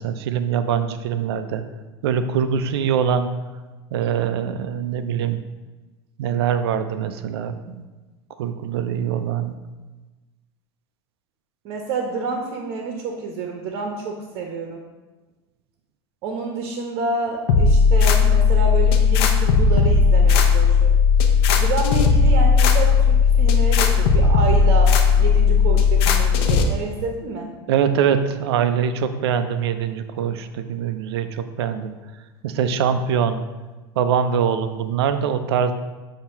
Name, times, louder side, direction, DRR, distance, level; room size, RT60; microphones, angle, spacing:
voice 1, 0.0-1.6 2.0-3.3 3.9-5.4 6.2-7.8 8.4-9.5 27.7-31.9 32.4-33.4 34.0-35.7, right 8 dB, 80° right, 10 dB, 0.6 m, -23 dB
voice 2, 11.6-14.8 16.2-21.0 21.5-27.5, right 3 dB, 60° right, 2 dB, 1.1 m, -28 dB
sound 1, 17.5-26.6, left 5 dB, 75° left, 0.8 m, -16 dB
8.4 x 2.9 x 5.8 m, 1.2 s
hypercardioid pair, 90°, 13 cm